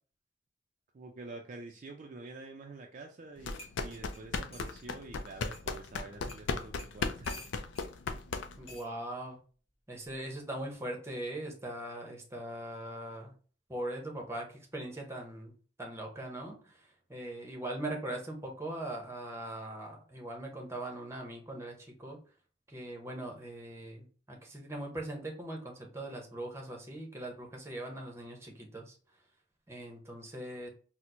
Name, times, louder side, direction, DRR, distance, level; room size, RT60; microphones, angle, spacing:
voice 1, 0.9-7.4, right 3 dB, 45° right, 2 dB, 0.4 m, -47 dB
sound 1, 3.2-3.3 3.6-4.8 5.5-5.6 6.3-6.5 6.8-7.9 8.7-8.9 10.0-10.3, left 1 dB, 30° left, 1.1 m, -50 dB
sound 2, 3.4-8.8, left 4 dB, 80° left, 0.4 m, -36 dB
voice 2, 8.6-9.4 9.9-13.3 13.7-15.5 15.8-16.8 17.1-22.2 22.7-29.0 29.7-30.7, right 1 dB, 15° right, 1 dB, 0.8 m, -40 dB
4.3 x 2.1 x 2.5 m, 0.39 s
head